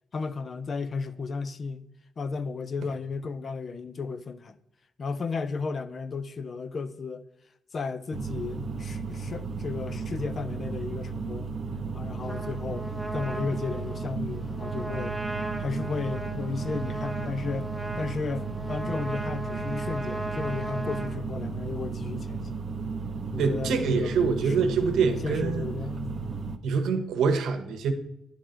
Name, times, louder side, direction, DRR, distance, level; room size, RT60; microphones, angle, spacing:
voice 1, 0.1-1.9 2.2-4.6 5.0-7.2 7.7-11.5 11.9-15.2 15.6-17.7 18.0-22.7 23.3-24.7 25.2-26.2, left 4 dB, 40° left, 0.5 m, -34 dB
sound 1, 8.1-26.6, right 4 dB, 40° right, 0.5 m, -34 dB
Trumpet, 12.2-21.1, right 1 dB, 5° left, 1.2 m, -37 dB
voice 2, 23.4-25.7 26.6-27.9, right 5 dB, 90° right, 0.9 m, -25 dB
10.0 x 3.9 x 4.4 m
cardioid pair, 110°, 0 cm